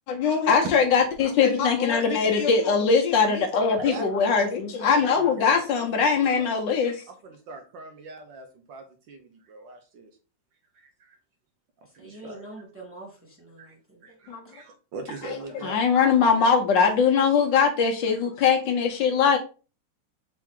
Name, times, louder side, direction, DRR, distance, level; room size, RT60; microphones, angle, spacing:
voice 1, 0.1-7.0 14.3-14.4 15.2-15.4 15.6-19.4, left 5 dB, 70° left, 1.3 m, -21 dB
voice 2, 3.8-4.5 4.8-6.0 6.4-6.5 7.1-10.1 10.7-11.2 11.9-12.5 13.6-13.7 14.0-15.8, right 3 dB, 70° right, 1.3 m, -41 dB
voice 3, 12.0-14.2 14.4-14.5, right 2 dB, 10° right, 0.7 m, -45 dB
4.5 x 2.9 x 3.6 m
omnidirectional pair, 2.3 m